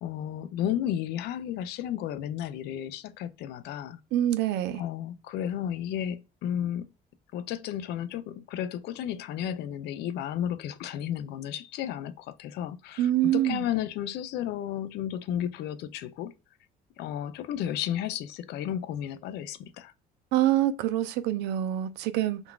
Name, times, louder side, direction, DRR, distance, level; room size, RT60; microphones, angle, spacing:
voice 1, 0.0-4.0 4.7-6.9 7.3-16.3 17.0-19.9, left 10 dB, 80° left, 0.4 m, -33 dB
voice 2, 4.1-4.8 13.0-13.6 20.3-22.4, right 13 dB, 85° right, 0.4 m, -25 dB
3.7 x 2.3 x 2.2 m
cardioid pair, 110°, 17 cm